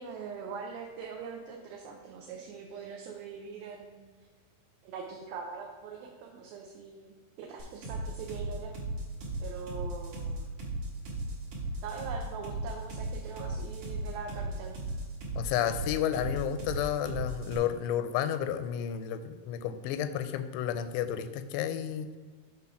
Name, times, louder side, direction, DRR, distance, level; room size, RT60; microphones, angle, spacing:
voice 1, 0.0-4.1 4.8-8.7 9.4-10.5 11.8-14.7, right 5 dB, 80° right, 1 dB, 2.2 m, -42 dB
sound 1, 7.6-17.6, right 2 dB, 55° right, 2.6 m, -36 dB
voice 2, 15.4-22.1, left 10 dB, 90° left, 10 dB, 2.7 m, -31 dB
7.7 x 3.7 x 5.7 m, 1.4 s
omnidirectional pair, 4.8 m